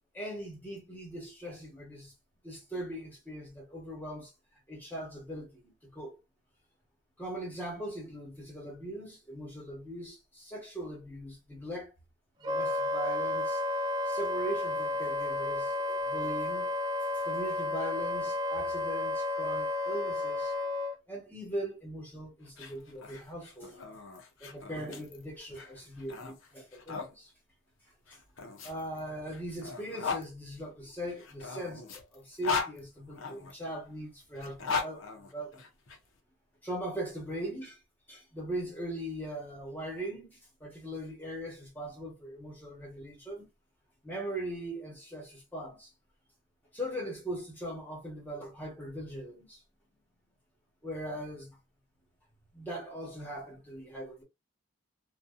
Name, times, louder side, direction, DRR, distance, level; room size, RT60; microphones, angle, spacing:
voice 1, 0.1-2.1 2.4-4.3 4.7-6.2 7.2-11.9 12.4-13.6 14.0-16.7 17.2-20.5 21.1-23.8 24.4-27.3 28.1-28.2 28.6-35.7 36.6-37.8 38.1-43.5 44.0-45.9 46.7-49.6 50.8-51.6 52.5-54.2, right 1 dB, 10° left, 1.1 m, -40 dB
Wind instrument woodwind instrument, 12.4-20.9, left 2 dB, 20° right, 0.3 m, -32 dB
sound 1, 22.4-27.1 28.1-30.3 31.2-33.5 34.3-36.0, left 5 dB, 80° left, 0.7 m, -38 dB
2.6 x 2.3 x 2.3 m
head